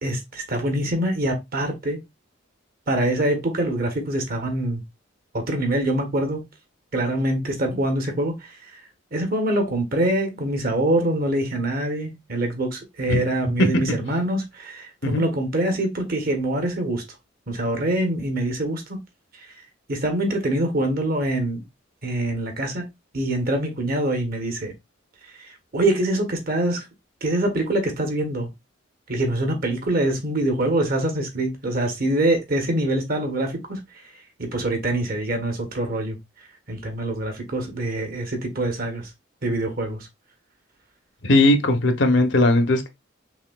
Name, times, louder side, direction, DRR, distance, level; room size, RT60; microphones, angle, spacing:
voice 1, 0.0-2.0 2.9-4.8 5.3-6.5 6.9-8.3 9.1-17.0 17.5-19.0 19.9-21.6 22.0-22.8 23.1-24.7 25.7-26.9 27.2-28.5 29.1-33.8 34.4-36.2 36.7-39.1 39.4-40.1, right 1 dB, 50° right, 1.1 m, -24 dB
voice 2, 41.2-42.9, left 1 dB, 65° left, 0.8 m, -18 dB
5.7 x 2.7 x 2.3 m
head